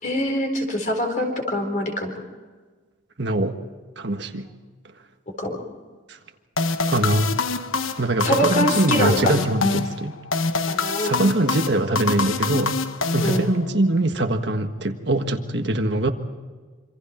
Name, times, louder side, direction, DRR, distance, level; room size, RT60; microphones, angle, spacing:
voice 1, 0.0-2.1 5.4-5.6 8.2-9.4 10.7-11.3 13.2-13.5, equal, 40° left, 4 dB, 4.1 m, -24 dB
voice 2, 3.2-3.6 4.0-4.5 6.1-6.2 6.9-7.3 8.0-10.2 11.0-12.8 13.1-16.1, right 2 dB, 60° right, 5 dB, 1.5 m, -23 dB
sound 1, 6.6-13.9, left 4 dB, 90° left, 1.2 m, -26 dB
26.5 x 26.0 x 4.4 m, 1.4 s
head